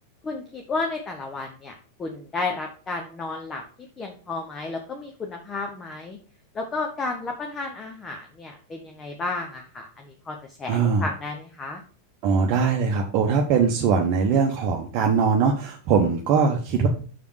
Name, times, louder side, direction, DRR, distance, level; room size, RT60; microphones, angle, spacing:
voice 1, 0.2-3.6 4.0-6.2 6.5-11.8, left 3 dB, 20° left, 3 dB, 1.0 m, -32 dB
voice 2, 10.7-11.1 12.2-16.9, right 5 dB, 40° right, 2 dB, 0.9 m, -21 dB
6.0 x 5.3 x 4.7 m, 0.41 s
figure-of-eight pair, 90°, 0 cm